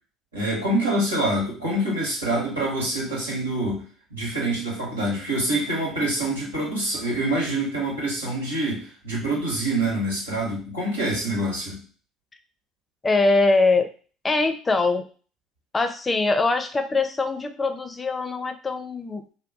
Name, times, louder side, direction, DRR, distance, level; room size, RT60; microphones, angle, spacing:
voice 1, 0.3-3.8 4.1-11.8, right 1 dB, 90° right, -4 dB, 1.3 m, -26 dB
voice 2, 13.0-13.9 14.2-15.0 15.7-19.2, left 3 dB, 25° left, 8 dB, 0.5 m, -22 dB
2.8 x 2.2 x 3.5 m, 0.40 s
hypercardioid pair, 60°, 0 cm